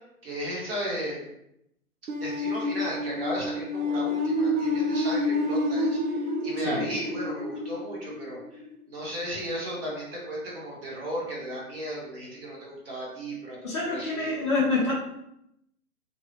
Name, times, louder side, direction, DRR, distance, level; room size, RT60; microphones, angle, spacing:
voice 1, 0.2-1.2 2.2-8.6 8.9-14.3, equal, 40° right, -4 dB, 1.0 m, -35 dB
sound 1, 2.1-8.9, left 1 dB, 75° right, 0.7 m, -29 dB
voice 2, 13.6-14.9, left 3 dB, 20° left, -7 dB, 0.5 m, -26 dB
2.7 x 2.0 x 2.8 m, 0.79 s
figure-of-eight pair, 130°, 46 cm